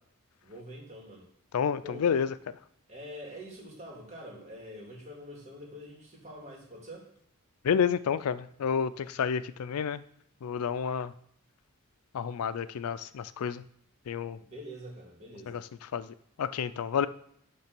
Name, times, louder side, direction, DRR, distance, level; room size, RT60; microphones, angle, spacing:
voice 1, 0.4-1.3 1.8-2.1 2.9-7.1 14.5-15.6, equal, 30° right, -2 dB, 2.4 m, -45 dB
voice 2, 1.5-2.3 7.6-10.0 10.4-11.1 12.1-13.6 14.1-14.4 15.5-15.6 15.9-16.1 16.4-17.1, left 7 dB, 90° left, 15 dB, 0.4 m, -29 dB
8.6 x 3.3 x 6.0 m, 0.70 s
head